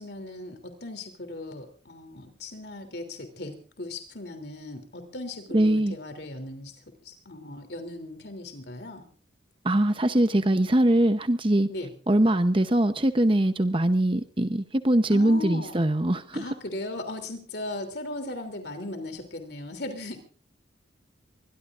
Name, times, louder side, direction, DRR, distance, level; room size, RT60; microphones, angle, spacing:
voice 1, 0.0-6.7 7.0-9.0 11.7-11.9 15.1-15.8 16.3-20.2, left 2 dB, 60° left, 6 dB, 3.2 m, -37 dB
voice 2, 5.5-5.9 9.6-11.7 12.1-16.4, right 1 dB, 30° right, 10 dB, 0.8 m, -22 dB
25.0 x 21.0 x 2.6 m, 0.38 s
head